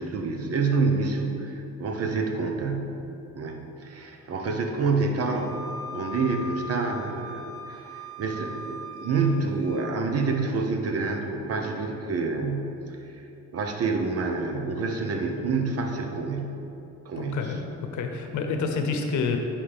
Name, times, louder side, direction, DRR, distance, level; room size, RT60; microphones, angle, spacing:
voice 1, 0.0-3.0 3.3-16.6 17.0-17.5, right 4 dB, 50° right, 4 dB, 0.9 m, -28 dB
Wind instrument woodwind instrument, 5.2-9.9, left 1 dB, 15° left, 1.4 m, -40 dB
voice 2, 17.2-17.6 17.9-19.4, left 5 dB, 70° left, 5 dB, 0.8 m, -28 dB
9.2 x 5.1 x 3.5 m, 2.9 s
cardioid pair, 90°, 30 cm